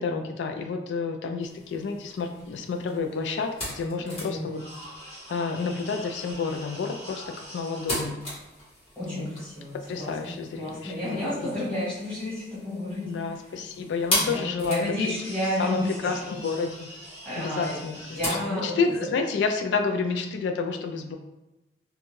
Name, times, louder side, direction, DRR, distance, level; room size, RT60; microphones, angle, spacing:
voice 1, 0.0-4.6 5.3-8.2 9.0-9.3 9.9-11.8 13.1-15.1 15.6-16.9 17.4-21.2, left 4 dB, 90° left, 4 dB, 0.3 m, -30 dB
sound 1, 1.4-18.3, left 1 dB, 35° left, 1.3 m, -38 dB
voice 2, 4.0-4.6 8.9-10.3 10.6-13.1 14.2-16.2 17.2-17.8 18.1-18.9, left 1 dB, 5° left, -10 dB, 1.1 m, -31 dB
2.5 x 2.2 x 3.0 m, 0.99 s
head